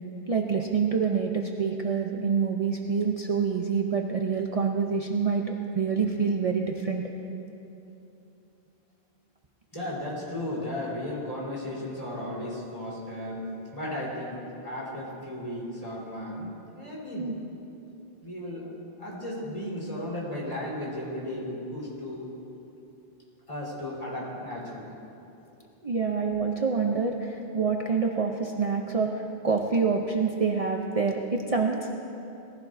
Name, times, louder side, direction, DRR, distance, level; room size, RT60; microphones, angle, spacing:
voice 1, 0.3-7.0 17.2-17.3 25.8-31.9, right 5 dB, 40° right, 1 dB, 0.7 m, -27 dB
voice 2, 9.7-17.3 18.2-18.7 19.0-22.3 23.5-24.9, left 1 dB, 35° left, -6 dB, 4.0 m, -35 dB
20.5 x 15.5 x 2.7 m, 2.9 s
omnidirectional pair, 1.0 m